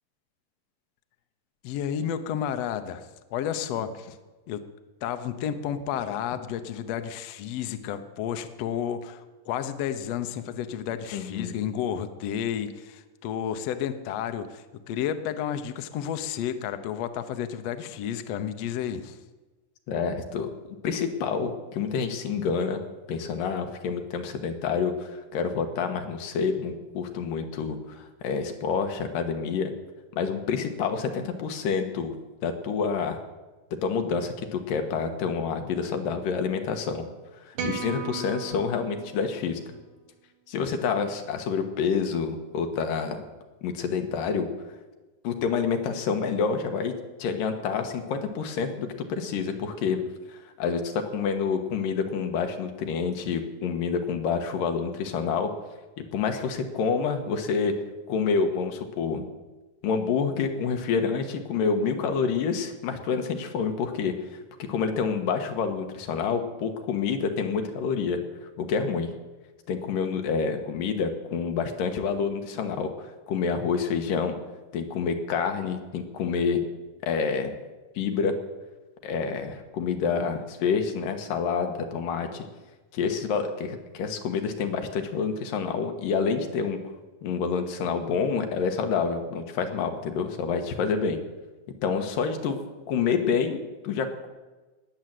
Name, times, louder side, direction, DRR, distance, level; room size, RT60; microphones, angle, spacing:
voice 1, 1.6-3.0 3.3-4.2 4.5-4.6 5.0-19.2, left 9 dB, 70° left, 9 dB, 1.7 m, -31 dB
voice 2, 11.1-11.6 19.9-20.5 20.8-22.8 23.1-29.7 30.2-32.1 32.4-33.2 33.8-37.0 37.4-39.6 40.5-43.2 43.6-44.5 45.2-46.9 47.2-50.0 50.3-55.5 56.0-57.7 58.1-59.3 59.8-64.4 64.7-68.2 68.6-69.1 69.7-74.3 74.7-76.6 77.0-77.5 78.0-78.3 79.0-82.5 82.9-86.8 87.2-91.2 91.8-92.6 92.9-94.3, left 5 dB, 85° left, 5 dB, 3.0 m, -28 dB
sound 1, 37.6-39.9, right 6 dB, 90° right, 3.2 m, -37 dB
19.5 x 7.9 x 7.7 m, 1.2 s
omnidirectional pair, 3.8 m